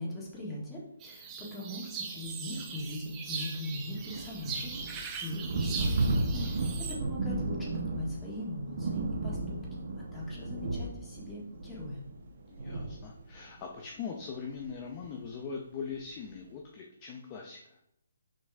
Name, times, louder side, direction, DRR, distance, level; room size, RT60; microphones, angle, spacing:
voice 1, 0.0-12.0, left 1 dB, 10° left, -5 dB, 1.9 m, -40 dB
sound 1, 1.0-7.0, right 5 dB, 20° right, 0.9 m, -40 dB
sound 2, 2.1-2.2 2.5-13.5 14.6-14.7 15.0-15.2, right 2 dB, 55° right, 1.1 m, -34 dB
voice 2, 6.3-6.8 12.5-17.8, left 6 dB, 25° left, 1 dB, 0.7 m, -41 dB
6.0 x 5.2 x 3.5 m, 0.75 s
hypercardioid pair, 160°, 0 cm